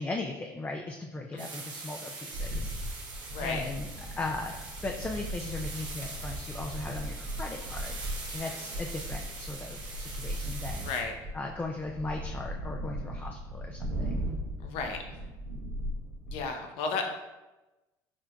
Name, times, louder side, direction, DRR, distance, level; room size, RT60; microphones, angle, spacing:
voice 1, 0.0-2.7 3.4-3.9 4.2-4.6 4.8-7.9 8.3-10.9 11.3-14.2, left 2 dB, 20° left, 1 dB, 0.4 m, -37 dB
sound 1, 1.4-11.0, right 3 dB, 45° right, 1.0 m, -43 dB
sound 2, 2.3-16.5, equal, 90° right, 0.8 m, -38 dB
voice 2, 3.3-3.6 10.8-11.1 14.6-15.0 16.3-17.2, left 4 dB, 70° left, 4 dB, 0.7 m, -33 dB
6.0 x 2.7 x 2.2 m, 1.1 s
supercardioid pair, 80°, 10 cm